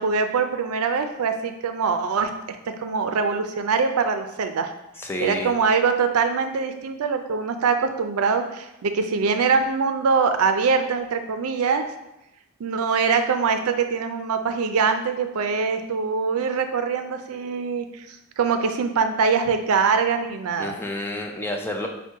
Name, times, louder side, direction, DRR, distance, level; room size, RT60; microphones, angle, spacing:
voice 1, 0.0-4.7 5.2-11.9 12.6-20.8, right 5 dB, 85° right, 7 dB, 0.4 m, -23 dB
voice 2, 5.0-5.5 20.6-21.9, left 1 dB, 10° left, 2 dB, 0.4 m, -29 dB
4.3 x 2.2 x 4.5 m, 0.90 s
head